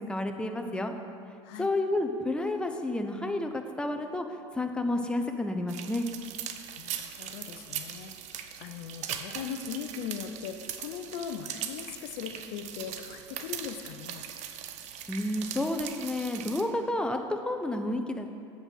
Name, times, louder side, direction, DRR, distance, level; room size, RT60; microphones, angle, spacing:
voice 1, 0.1-0.9 1.6-4.3 4.5-6.1 15.1-18.3, left 1 dB, 5° left, 5 dB, 0.7 m, -30 dB
sound 1, 5.7-16.6, right 9 dB, 50° right, 0.7 m, -40 dB
voice 2, 6.8-14.2, left 8 dB, 60° left, 7 dB, 0.6 m, -39 dB
7.9 x 5.7 x 6.3 m, 2.4 s
hypercardioid pair, 75°, 15 cm